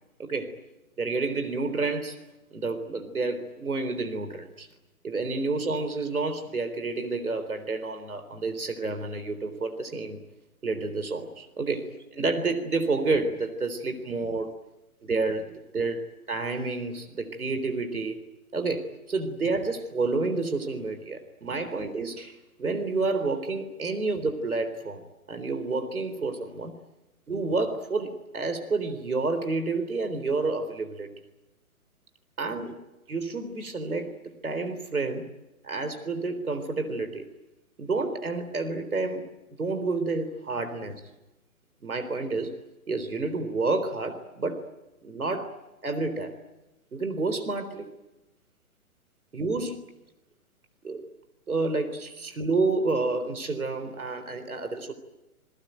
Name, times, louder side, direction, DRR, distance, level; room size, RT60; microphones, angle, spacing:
voice 1, 0.2-0.6 1.0-2.2 2.5-4.7 5.0-10.2 10.6-14.5 15.0-18.2 18.5-25.0 25.3-26.8 27.3-31.1 32.4-32.8 33.1-34.2 34.4-35.3 35.6-37.3 37.8-39.3 39.6-41.0 41.8-42.6 42.9-44.6 45.0-46.3 46.9-47.9 49.3-49.8 50.8-51.0 51.5-54.9, right 3 dB, 85° right, 8 dB, 3.9 m, -29 dB
28.0 x 21.5 x 9.2 m, 1.0 s
figure-of-eight pair, 130°, 43 cm